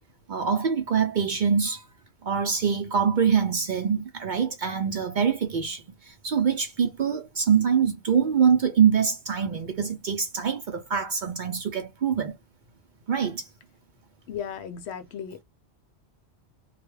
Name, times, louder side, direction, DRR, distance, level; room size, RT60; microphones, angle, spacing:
voice 1, 0.3-1.8 2.2-12.3 13.1-13.5, right 7 dB, 60° right, 0.5 m, -24 dB
voice 2, 14.3-15.4, left 8 dB, 75° left, 0.8 m, -35 dB
2.3 x 2.1 x 3.0 m
omnidirectional pair, 1.1 m